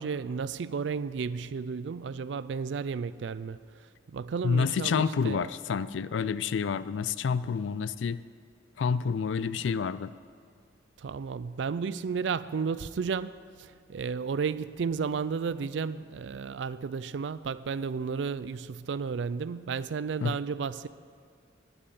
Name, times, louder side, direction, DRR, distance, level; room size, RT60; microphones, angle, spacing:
voice 1, 0.0-3.6 4.1-5.5 11.0-20.9, right 5 dB, 70° right, 0.4 m, -33 dB
voice 2, 4.4-8.2 8.8-10.1 20.2-20.3, left 6 dB, 80° left, 0.4 m, -28 dB
9.7 x 8.7 x 8.4 m
head